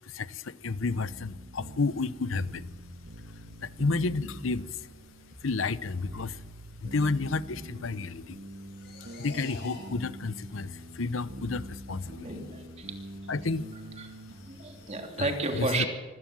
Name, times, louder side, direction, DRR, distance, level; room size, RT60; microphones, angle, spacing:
voice 1, 0.1-2.7 3.6-4.7 5.4-6.4 6.8-8.4 9.2-12.3 13.3-13.6 15.2-15.3 15.6-15.9, left 3 dB, 75° left, 16 dB, 0.8 m, -31 dB
sound 1, 0.8-14.9, equal, 55° right, 1.9 m, -45 dB
sound 2, 1.8-15.0, left 2 dB, 55° left, 7.9 m, -55 dB
voice 2, 12.2-12.9 14.0-14.1 14.5-15.9, right 2 dB, 35° right, 3 dB, 3.0 m, -32 dB
24.5 x 17.0 x 7.6 m, 1.4 s
head